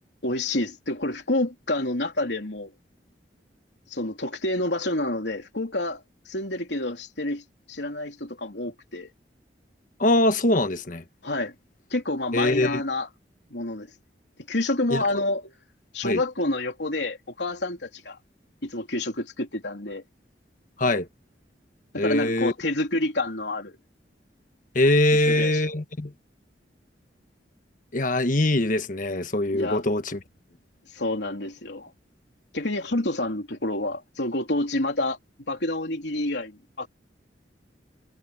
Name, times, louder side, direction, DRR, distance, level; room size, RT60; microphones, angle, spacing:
voice 1, 0.2-2.7 3.9-7.4 7.7-9.1 11.2-11.5 11.9-13.1 13.5-13.9 14.5-15.5 15.9-18.2 18.6-20.0 21.9-23.8 25.1-25.6 29.5-29.8 30.9-31.9 32.5-35.2 35.5-36.9, left 2 dB, 75° left, 3.5 m, -28 dB
voice 2, 10.0-11.0 12.3-12.8 14.9-15.0 16.0-16.2 20.8-21.1 21.9-22.5 24.7-26.1 27.9-30.2, left 1 dB, 50° left, 1.4 m, -22 dB
head